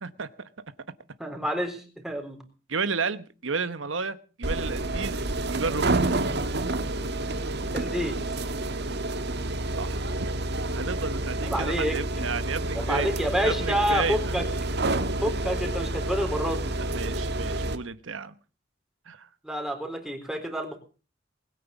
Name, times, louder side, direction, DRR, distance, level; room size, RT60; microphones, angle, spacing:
voice 1, 0.0-0.5 2.7-6.0 9.7-10.3 10.8-14.4 16.8-18.3 19.1-19.3, right 4 dB, 80° right, 12 dB, 1.1 m, -32 dB
voice 2, 1.2-2.4 7.7-8.2 11.4-12.0 12.7-14.4 15.2-16.7 19.4-20.8, equal, ahead, 4 dB, 3.8 m, -28 dB
sound 1, 4.4-17.8, right 2 dB, 60° right, 1.6 m, -29 dB
20.5 x 9.4 x 7.1 m, 0.37 s
head